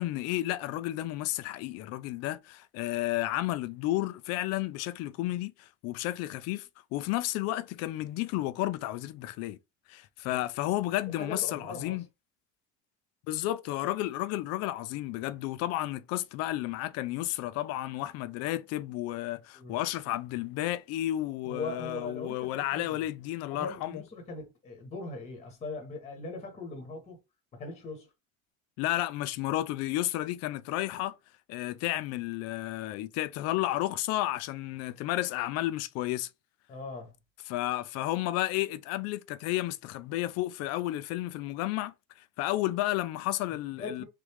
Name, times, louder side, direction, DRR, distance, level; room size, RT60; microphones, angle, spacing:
voice 1, 0.0-9.6 9.9-12.0 13.3-24.0 28.8-31.2 31.5-36.3 37.5-41.9 42.4-44.0, left 15 dB, 50° left, 0.5 m, -32 dB
voice 2, 11.1-12.0 19.5-19.7 21.4-22.8 23.5-27.2 27.5-28.1 36.7-37.1 43.8-44.0, left 3 dB, 20° left, 1.1 m, -40 dB
3.7 x 3.2 x 3.4 m
cardioid pair, 180°, 33 cm